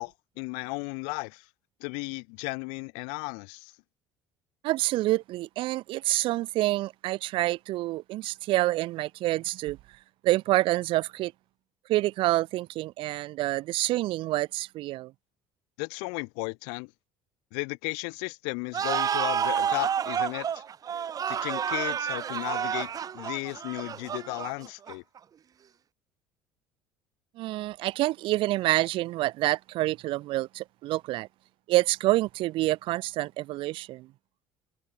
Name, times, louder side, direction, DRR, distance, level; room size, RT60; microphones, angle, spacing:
voice 1, 0.0-1.4 1.8-3.7 15.8-16.9 17.5-20.6 21.3-25.0, left 40 dB or more, 80° left, 1.7 m, -35 dB
voice 2, 4.6-9.8 10.2-11.3 11.9-15.1 27.4-31.3 31.7-34.1, right 17 dB, 65° right, 1.6 m, -27 dB
sound 1, 18.7-25.2, right 8 dB, 40° right, 1.0 m, -30 dB
supercardioid pair, 80°, 9 cm